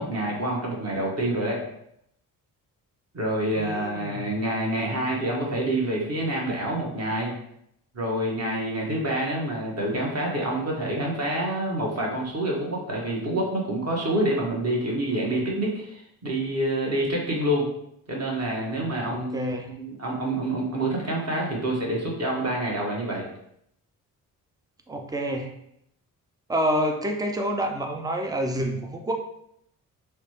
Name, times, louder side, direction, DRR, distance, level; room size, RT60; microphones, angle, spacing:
voice 1, 0.0-1.6 3.1-7.3 7.9-17.7 18.1-23.2, right 1 dB, 35° right, -2 dB, 1.2 m, -27 dB
voice 2, 3.5-4.3 19.1-19.8 24.9-25.5 26.5-29.1, equal, 10° right, 3 dB, 0.5 m, -28 dB
3.2 x 2.1 x 2.9 m, 0.75 s
hypercardioid pair, 40°, 46 cm